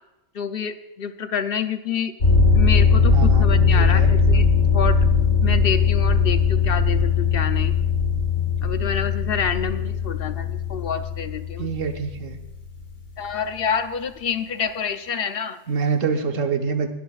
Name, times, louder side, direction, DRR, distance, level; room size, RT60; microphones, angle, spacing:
voice 1, 0.3-2.1 2.5-4.5 4.7-5.0 5.4-7.7 8.6-11.7 13.2-15.6, left 6 dB, 55° left, 10 dB, 0.8 m, -27 dB
sound 1, 2.2-13.0, left 5 dB, 75° left, 2.5 m, -19 dB
voice 2, 3.1-4.1 11.6-12.4 15.7-16.9, right 5 dB, 90° right, 5 dB, 1.4 m, -25 dB
20.5 x 12.0 x 2.4 m, 0.95 s
omnidirectional pair, 1.3 m